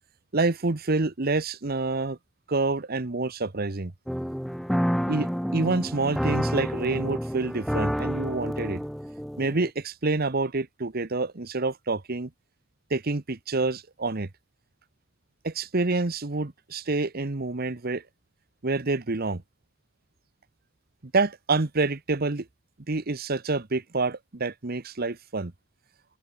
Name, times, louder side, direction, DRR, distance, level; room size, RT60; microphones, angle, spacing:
voice 1, 0.3-2.2 2.5-3.9 5.1-8.8 9.4-12.3 12.9-14.3 15.4-18.0 18.6-19.4 21.1-22.5 22.9-25.5, right 3 dB, 45° right, 1.1 m, -27 dB
sound 1, 4.1-9.7, equal, ahead, 3.8 m, -29 dB
open air
head